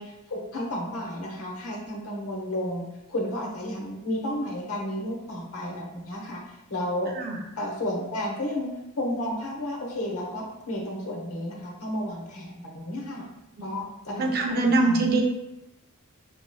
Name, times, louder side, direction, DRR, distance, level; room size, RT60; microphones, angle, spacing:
voice 1, 0.0-6.4 6.7-7.2 7.6-8.7 9.0-13.3 13.6-15.2, left 1 dB, 75° left, -2 dB, 1.1 m, -32 dB
voice 2, 14.1-15.2, right 2 dB, 45° right, 1 dB, 0.6 m, -23 dB
5.5 x 3.0 x 2.3 m, 0.93 s
head